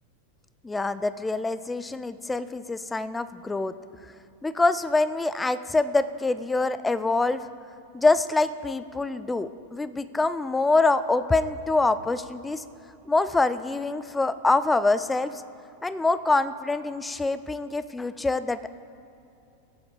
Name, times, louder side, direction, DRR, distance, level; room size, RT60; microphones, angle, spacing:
voice 1, 0.6-3.7 4.4-7.5 7.9-12.6 13.1-15.4 15.8-18.7, left 3 dB, 10° left, 14 dB, 0.4 m, -25 dB
16.0 x 7.4 x 5.2 m, 2.8 s
figure-of-eight pair, 90°, 0 cm